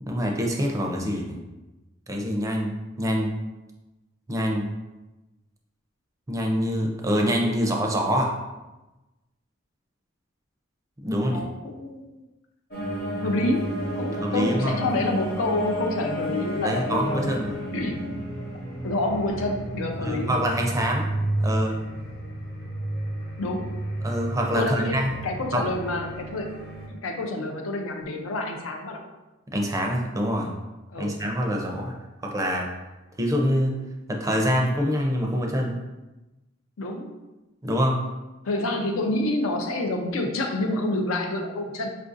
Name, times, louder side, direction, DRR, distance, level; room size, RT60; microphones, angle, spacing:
voice 1, 0.0-1.4 2.1-2.7 3.0-3.3 4.3-4.7 6.3-8.3 11.0-11.4 14.2-14.8 16.6-17.7 20.0-21.1 21.4-21.8 24.0-25.2 25.5-25.6 29.5-30.5 31.0-31.9 32.2-32.7 33.2-33.8 34.1-35.8 37.6-38.0, equal, 15° right, 1 dB, 0.4 m, -25 dB
voice 2, 11.2-12.2 13.2-17.3 17.7-18.0 18.8-20.3 23.4-23.7 24.5-24.9 25.2-26.5 26.9-29.0 30.9-31.1 36.8-37.2 38.4-42.0, left 2 dB, 90° left, 3 dB, 0.5 m, -28 dB
sound 1, 12.7-26.9, right 1 dB, 50° left, 0.8 m, -31 dB
4.6 x 2.5 x 2.5 m, 1.1 s
head